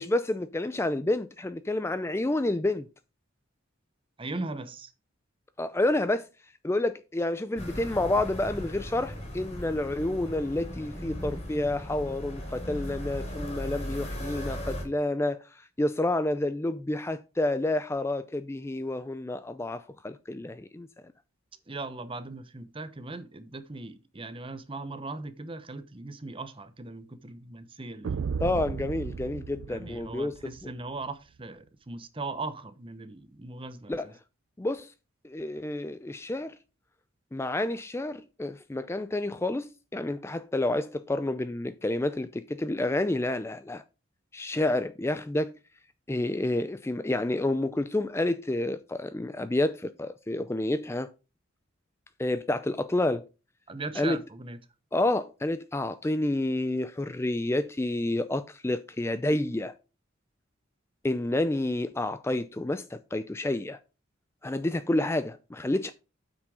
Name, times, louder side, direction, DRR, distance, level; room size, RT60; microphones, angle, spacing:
voice 1, 0.0-2.9 5.6-6.3 6.6-20.9 28.4-30.4 33.9-34.1 34.6-34.9 35.2-36.6 37.3-43.8 44.3-45.6 46.1-51.1 52.2-53.2 54.0-54.2 54.9-59.7 61.0-63.8 64.4-65.9, left 1 dB, 15° left, 0.4 m, -29 dB
voice 2, 4.2-4.9 21.7-28.3 29.7-34.1 53.7-54.6, right 3 dB, 25° right, 0.8 m, -39 dB
sound 1, 7.6-14.8, equal, 30° left, 3.6 m, -37 dB
sound 2, 28.0-30.7, right 5 dB, 65° right, 0.4 m, -34 dB
8.1 x 6.1 x 4.8 m
head